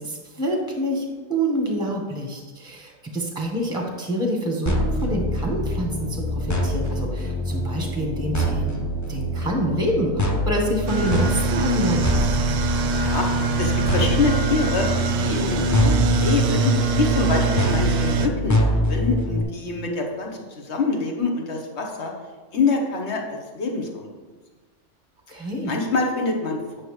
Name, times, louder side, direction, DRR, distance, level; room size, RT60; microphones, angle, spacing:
voice 1, 0.0-12.1 17.2-17.3 25.3-25.7, equal, 5° right, 1 dB, 1.1 m, -27 dB
sound 1, 4.7-19.4, left 1 dB, 20° left, 0.6 m, -25 dB
sound 2, 10.9-18.3, right 5 dB, 60° right, 0.6 m, -24 dB
voice 2, 12.7-14.9 15.2-22.1 22.5-24.1 25.4-26.8, left 3 dB, 65° left, 1 dB, 1.4 m, -26 dB
9.1 x 6.3 x 3.2 m, 1.3 s
omnidirectional pair, 1.2 m